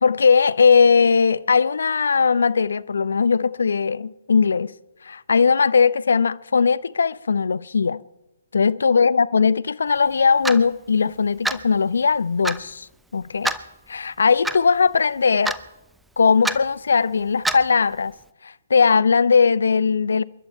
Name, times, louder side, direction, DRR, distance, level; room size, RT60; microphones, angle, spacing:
voice 1, 0.0-4.7 5.0-8.0 8.5-12.9 13.1-13.5 13.9-15.6 16.2-18.1 18.4-20.2, left 5 dB, 65° left, 0.6 m, -19 dB
Clock, 10.4-10.6 11.4-11.7 12.4-12.6 13.4-13.6 14.4-14.6 15.4-15.7 16.4-16.6 17.4-17.7, right 2 dB, 5° right, 0.6 m, -25 dB
28.0 x 11.0 x 4.5 m
figure-of-eight pair, 130°, 0 cm